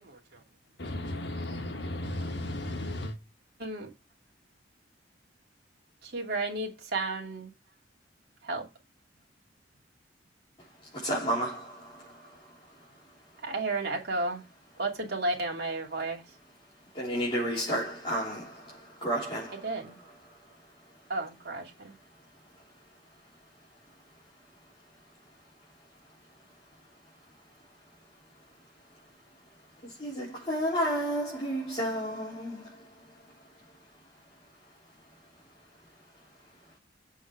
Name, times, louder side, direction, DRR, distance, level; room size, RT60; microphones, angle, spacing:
voice 1, 0.8-3.1, left 1 dB, 65° left, 1.7 m, -35 dB
voice 2, 6.1-7.5 8.5-8.6 13.4-14.4 14.8-16.2 19.6-19.9 21.1-21.7, right 2 dB, 60° right, 2.7 m, -32 dB
voice 3, 10.9-12.5 16.9-20.2 29.8-32.9, right 1 dB, 30° left, 4.0 m, -32 dB
7.6 x 5.4 x 4.8 m
head